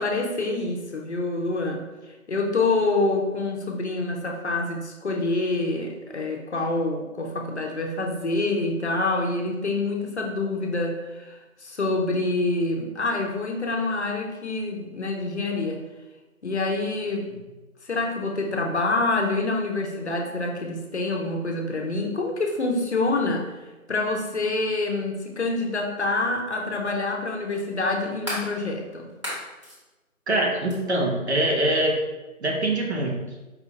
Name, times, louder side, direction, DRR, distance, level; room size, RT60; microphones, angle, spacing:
voice 1, 0.0-1.8 2.3-15.8 16.4-17.3 17.8-23.6 23.9-29.1, left 2 dB, 50° left, 2 dB, 0.6 m, -26 dB
sound 1, 25.5-25.6 27.5-28.5 29.1-29.8 30.7-30.8, left 1 dB, 20° right, 0.9 m, -33 dB
voice 2, 30.3-31.9 32.4-33.2, right 1 dB, 50° right, 0 dB, 0.8 m, -23 dB
4.8 x 2.5 x 3.9 m, 1.1 s
hypercardioid pair, 180°, 42 cm